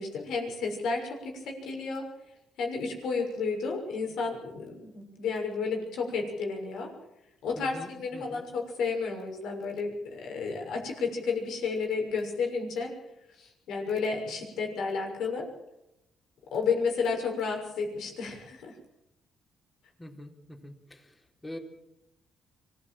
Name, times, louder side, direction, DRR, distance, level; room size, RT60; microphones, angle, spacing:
voice 1, 0.0-2.0 2.6-6.9 7.4-12.9 13.3-15.5 16.5-18.8, left 4 dB, 80° left, 2 dB, 6.4 m, -32 dB
voice 2, 7.6-8.5 20.0-21.6, left 1 dB, 15° left, 2 dB, 4.1 m, -45 dB
25.0 x 15.5 x 7.8 m, 0.89 s
cardioid pair, 90°, 0 cm